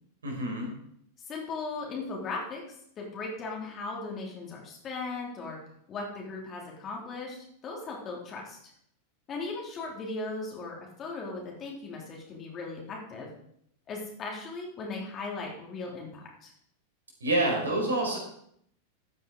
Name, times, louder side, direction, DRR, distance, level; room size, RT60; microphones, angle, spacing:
voice 1, 0.2-0.7 17.2-18.2, right 1 dB, 70° right, 0 dB, 4.5 m, -27 dB
voice 2, 1.3-5.6 5.9-8.6 9.3-13.3 13.9-16.5, left 3 dB, 25° left, -2 dB, 3.0 m, -38 dB
14.0 x 9.3 x 3.9 m, 0.68 s
figure-of-eight pair, 90°, 0 cm